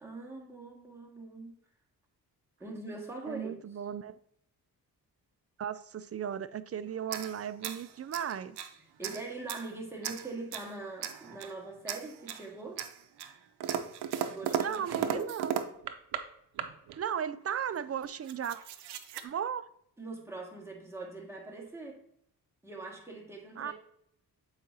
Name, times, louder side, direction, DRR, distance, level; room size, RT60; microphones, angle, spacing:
voice 1, 0.0-1.6 2.6-3.6 9.0-12.8 14.3-15.3 20.0-22.0 22.6-23.7, right 3 dB, 5° right, 1.8 m, -42 dB
voice 2, 3.3-4.2 5.6-8.6 14.6-15.5 17.0-18.6 19.2-19.7 23.6-23.7, right 8 dB, 40° right, 0.4 m, -36 dB
sound 1, 7.0-8.7 9.0-9.7 10.0-10.7 11.0-11.6 11.9-12.5 12.8-16.2 16.6-17.0 17.7-17.8 18.0-19.2, right 9 dB, 85° right, 0.6 m, -36 dB
7.4 x 4.8 x 2.7 m
cardioid pair, 70°, 39 cm